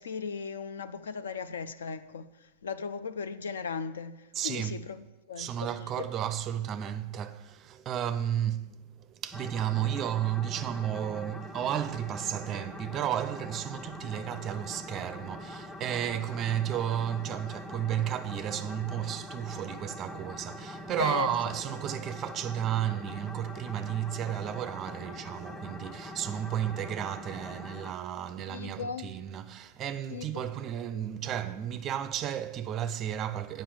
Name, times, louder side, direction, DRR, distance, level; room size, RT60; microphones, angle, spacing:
voice 1, 0.0-2.3 2.6-5.0 5.3-5.7 6.0-6.1 21.0-21.3 28.5-29.1 30.1-30.5, left 5 dB, 70° left, 0.4 m, -36 dB
voice 2, 4.3-4.8 5.4-33.6, right 10 dB, 30° right, 0.4 m, -33 dB
sound 1, 9.3-27.9, left 1 dB, 10° left, 0.9 m, -43 dB
8.6 x 5.2 x 7.2 m
figure-of-eight pair, 100°, 0 cm